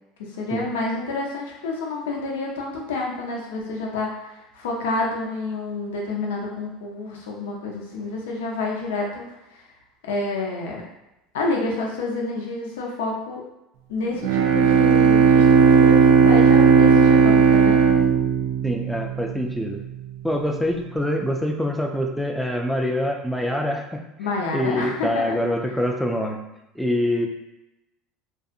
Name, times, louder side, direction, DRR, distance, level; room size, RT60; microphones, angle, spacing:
voice 1, 0.2-9.3 9.5-9.6 10.0-10.8 11.3-13.4 13.9-17.8 24.2-25.4, left 3 dB, 90° left, -1 dB, 0.6 m, -28 dB
Bowed string instrument, 14.2-19.4, right 5 dB, 75° right, 0.3 m, -15 dB
voice 2, 18.6-19.8 20.2-24.0 24.5-26.4 26.8-27.3, left 1 dB, ahead, 2 dB, 0.4 m, -25 dB
2.6 x 2.5 x 2.4 m, 0.92 s
supercardioid pair, 100°, 0 cm